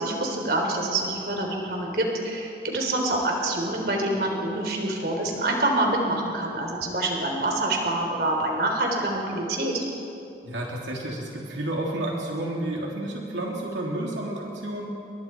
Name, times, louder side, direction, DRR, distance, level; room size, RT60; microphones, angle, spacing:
voice 1, 0.0-9.8, right 2 dB, 60° right, 1 dB, 3.9 m, -26 dB
voice 2, 10.4-15.0, right 1 dB, 90° right, -2 dB, 3.0 m, -31 dB
29.5 x 23.0 x 4.6 m, 2.7 s
head